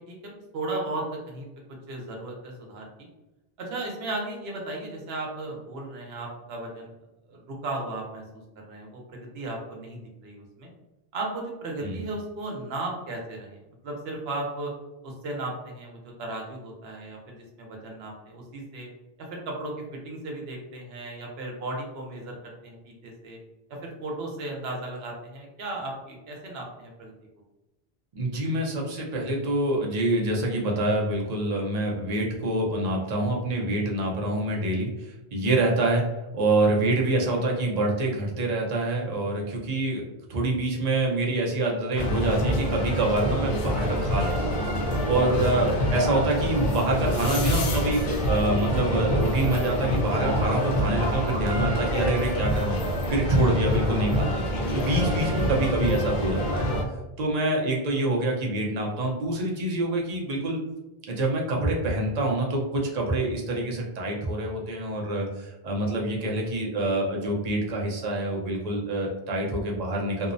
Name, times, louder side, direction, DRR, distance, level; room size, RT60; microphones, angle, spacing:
voice 1, 0.1-1.5 1.9-3.1 3.6-6.9 7.3-10.7 11.1-14.7 15.0-18.9 19.2-19.7 20.0-23.4 23.8-27.1, right 2 dB, 75° right, 0 dB, 0.9 m, -35 dB
voice 2, 28.1-36.0 36.3-52.8 53.1-54.4 54.7-56.6 57.2-60.6 61.1-70.3, right 2 dB, 50° right, 0 dB, 0.6 m, -26 dB
sound 1, 42.0-56.8, equal, 65° left, 0.7 m, -26 dB
2.7 x 2.0 x 2.5 m, 1.0 s
omnidirectional pair, 1.0 m